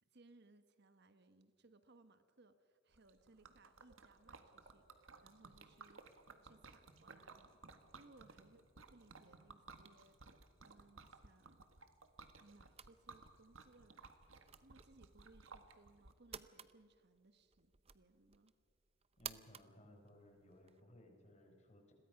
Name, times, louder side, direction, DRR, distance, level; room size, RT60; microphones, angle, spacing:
voice 1, 0.0-7.6 8.0-10.2 10.6-11.7 12.4-14.1 14.6-18.5, right 2 dB, 60° right, 10 dB, 1.2 m, -67 dB
Liquid, 2.9-16.1, right 4 dB, 85° right, 1.7 m, -59 dB
sound 1, 12.7-20.8, right 8 dB, 30° right, 0.7 m, -56 dB
voice 2, 19.2-21.9, left 1 dB, 35° left, 3 dB, 4.4 m, -62 dB
29.5 x 22.0 x 5.9 m, 2.2 s
head